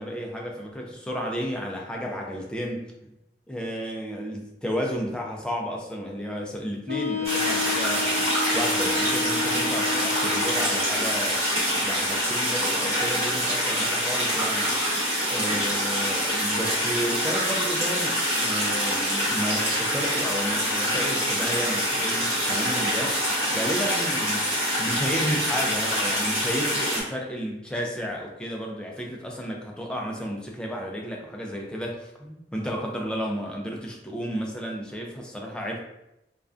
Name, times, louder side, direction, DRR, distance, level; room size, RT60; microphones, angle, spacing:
voice 1, 0.0-3.1 3.5-8.3 8.5-11.4 11.8-14.7 15.3-35.8, equal, 5° left, -1 dB, 0.3 m, -32 dB
Wind instrument woodwind instrument, 6.9-11.0, left 4 dB, 65° right, 0.7 m, -30 dB
sound 1, 7.2-27.0, equal, 40° right, 0.9 m, -25 dB
2.3 x 2.1 x 2.4 m, 0.87 s
head